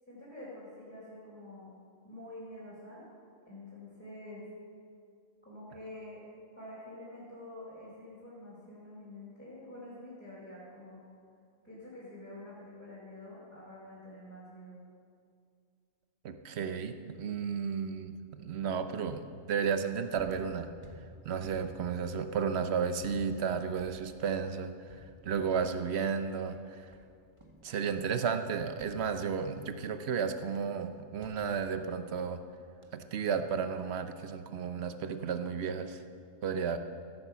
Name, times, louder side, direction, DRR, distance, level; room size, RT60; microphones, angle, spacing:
voice 1, 0.1-1.7 2.0-3.0 3.5-4.4 5.4-6.2 6.5-11.0 11.6-14.8, left 1 dB, 10° left, -10 dB, 3.7 m, -47 dB
voice 2, 16.2-20.7 21.2-26.9 27.6-32.4 32.9-36.0 36.4-36.8, right 6 dB, 60° right, 9 dB, 1.0 m, -33 dB
sound 1, 20.1-28.1 28.8-29.8 31.2-32.5 32.8-33.2, equal, 25° right, 1.3 m, -55 dB
15.0 x 8.8 x 6.9 m, 2.3 s
omnidirectional pair, 1.4 m